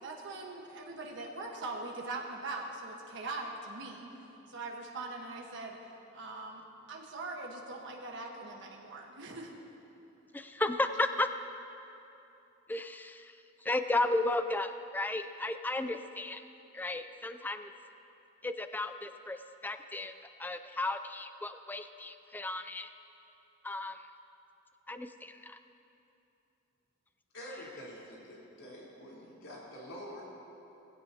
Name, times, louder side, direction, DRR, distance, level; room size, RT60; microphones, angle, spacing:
voice 1, 0.0-4.0 4.5-5.8 6.1-6.6 6.9-9.5, right 3 dB, 65° right, 0 dB, 1.3 m, -41 dB
voice 2, 10.3-11.3 12.7-16.4 16.7-17.7 18.4-20.1 20.4-22.9 23.6-24.1 24.9-25.6, left 2 dB, 10° left, 9 dB, 0.3 m, -34 dB
voice 3, 27.3-30.3, equal, 90° left, -6 dB, 3.7 m, -46 dB
20.0 x 16.0 x 2.8 m, 2.9 s
head